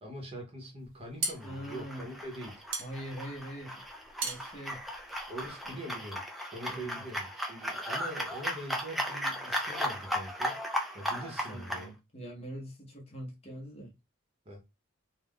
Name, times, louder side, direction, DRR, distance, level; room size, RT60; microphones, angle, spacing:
voice 1, 0.0-2.6 5.3-10.6 10.9-11.9 14.5-14.6, right 1 dB, 30° right, 0.8 m, -43 dB
sound 1, 0.8-5.8, right 3 dB, 85° right, 0.7 m, -39 dB
voice 2, 1.4-2.1 2.8-3.8 4.2-4.8 5.6-5.8 6.7-7.0 11.1-13.9, equal, 30° left, 0.7 m, -43 dB
sound 2, 1.4-11.9, equal, ahead, 0.3 m, -36 dB
2.4 x 2.1 x 3.5 m
head